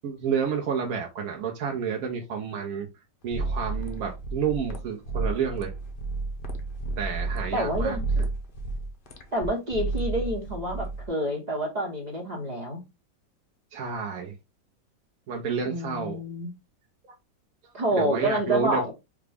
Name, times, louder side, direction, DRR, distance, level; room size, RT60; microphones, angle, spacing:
voice 1, 0.0-2.9 3.2-5.7 7.0-8.0 13.7-14.3 15.3-16.2 17.6-18.9, right 6 dB, 60° right, 1.0 m, -30 dB
sound 1, 3.3-11.1, right 3 dB, 90° left, 0.4 m, -31 dB
voice 2, 7.5-8.3 9.3-12.8 15.7-16.5 17.7-18.9, right 1 dB, 30° right, 0.9 m, -28 dB
4.9 x 2.3 x 3.4 m
omnidirectional pair, 2.0 m